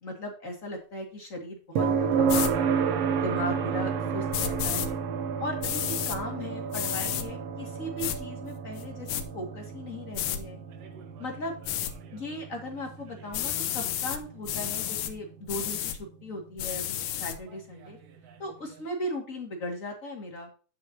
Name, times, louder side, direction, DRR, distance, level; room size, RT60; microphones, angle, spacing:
voice 1, 0.0-2.7 3.2-5.0 5.4-9.1 9.3-10.6 11.2-11.5 12.1-18.0 18.4-20.5, left 1 dB, 30° left, 1 dB, 2.2 m, -37 dB
sound 1, 1.8-15.6 17.8-17.9, right 6 dB, 65° right, 1.7 m, -31 dB
sound 2, 2.3-2.5 4.3-4.9 5.6-6.2 6.7-7.3 8.0-8.2 8.8-9.2 10.1-10.4 11.7-11.9 13.3-14.2 14.5-15.1 15.5-16.0 16.6-17.4, left 11 dB, 85° left, 2.5 m, -31 dB
9.6 x 7.5 x 2.8 m, 0.37 s
omnidirectional pair, 3.6 m